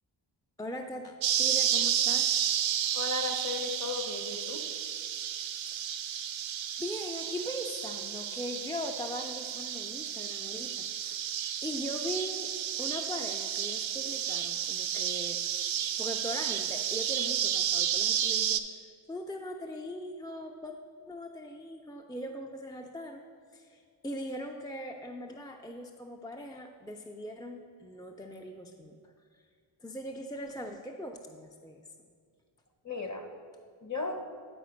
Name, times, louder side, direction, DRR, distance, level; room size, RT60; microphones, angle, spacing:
voice 1, 0.6-2.4 5.7-5.8 6.8-11.2 11.6-12.5 12.8-15.4 16.0-20.8 21.1-23.2 23.5-29.5 29.8-31.8, equal, 10° left, 3 dB, 0.4 m, -40 dB
sound 1, 1.2-18.6, right 9 dB, 65° right, 0.5 m, -31 dB
voice 2, 2.9-4.7 32.8-33.3 33.8-34.2, left 3 dB, 35° left, 5 dB, 1.0 m, -35 dB
8.9 x 4.2 x 5.1 m, 2.1 s
cardioid pair, 40°, 50 cm